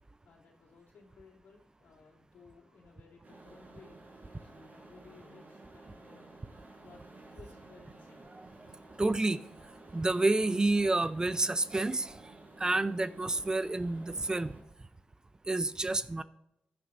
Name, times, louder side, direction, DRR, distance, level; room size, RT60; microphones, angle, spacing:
voice 1, 0.2-4.1 4.4-6.3 6.8-7.0 7.3-8.3, left 4 dB, 80° left, 2.9 m, -58 dB
sound 1, 3.2-14.6, right 2 dB, 65° right, 4.4 m, -53 dB
voice 2, 9.0-9.4 9.9-12.2 12.6-14.5 15.5-16.2, right 2 dB, 25° right, 0.5 m, -29 dB
15.5 x 9.4 x 2.6 m
cardioid pair, 70°, 3 cm